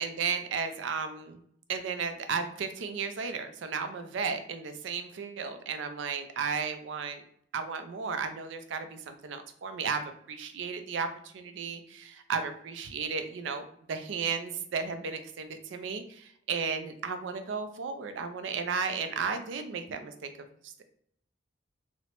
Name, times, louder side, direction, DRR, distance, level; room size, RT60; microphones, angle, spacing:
voice 1, 0.0-1.4 1.7-7.2 7.5-20.9, right 5 dB, 75° right, 8 dB, 0.4 m, -34 dB
2.8 x 2.1 x 2.9 m, 0.67 s
head